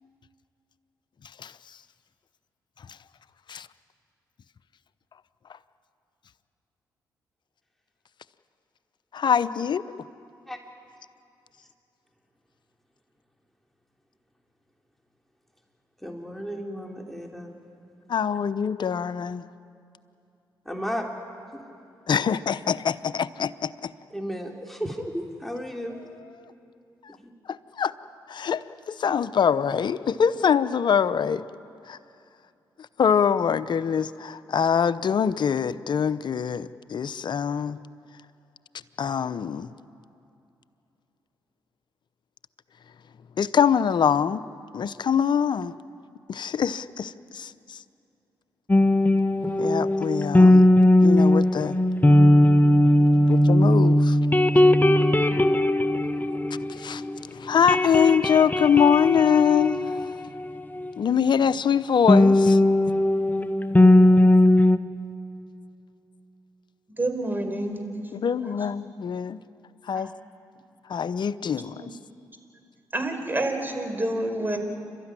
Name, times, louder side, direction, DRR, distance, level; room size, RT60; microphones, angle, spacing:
voice 1, 9.1-9.8 18.1-19.4 22.1-23.9 27.5-27.9 28.3-31.5 31.9-32.0 33.0-37.8 39.0-39.7 43.4-44.4 44.7-45.7 46.3-47.8 49.6-50.7 51.0-51.8 53.3-54.2 56.7-57.0 57.3-60.0 61.0-62.6 68.1-69.4 69.9-70.1 70.9-72.0, left 7 dB, 55° left, 15 dB, 0.8 m, -24 dB
voice 2, 16.0-17.5 20.7-21.1 21.5-21.6 24.1-26.0, equal, ahead, 0 dB, 3.5 m, -33 dB
sound 1, 48.7-57.2 57.5-60.9 62.1-64.8, left 1 dB, 20° left, 1.2 m, -18 dB
voice 3, 67.0-68.5 69.9-70.1 71.7-71.9 72.9-74.6, right 1 dB, 20° right, 5 dB, 4.7 m, -29 dB
28.5 x 13.5 x 9.9 m, 2.7 s
hypercardioid pair, 45°, 9 cm